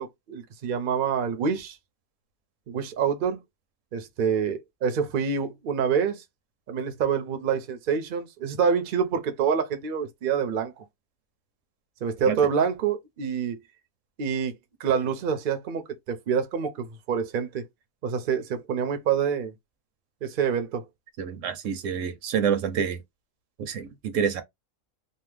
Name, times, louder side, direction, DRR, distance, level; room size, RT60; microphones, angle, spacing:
voice 1, 0.0-1.8 2.7-3.4 3.9-6.2 6.7-10.8 12.0-13.6 14.2-15.8 16.1-17.6 18.0-19.5 20.2-20.8, right 7 dB, 55° right, 0.6 m, -26 dB
voice 2, 21.2-23.0 23.6-24.4, right 7 dB, 70° right, 0.9 m, -27 dB
2.7 x 2.0 x 3.2 m
omnidirectional pair, 1.4 m